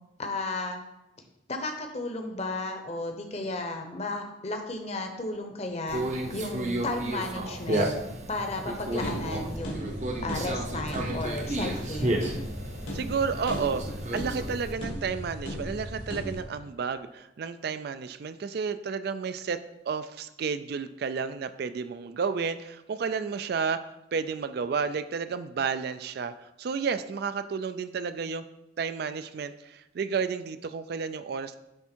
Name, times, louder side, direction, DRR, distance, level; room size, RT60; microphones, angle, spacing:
voice 1, 0.2-0.8 1.5-6.0 6.3-7.9 8.3-9.9 10.2-12.2, left 2 dB, 35° left, 4 dB, 0.8 m, -34 dB
Conversation, 5.9-14.7, right 1 dB, 35° right, 0.7 m, -32 dB
sound 1, 8.9-16.4, equal, 80° left, 1.8 m, -37 dB
voice 2, 12.9-19.6 19.9-23.8 24.1-28.4 28.8-31.6, right 5 dB, 55° right, 11 dB, 0.3 m, -31 dB
9.8 x 3.6 x 4.4 m, 0.92 s
head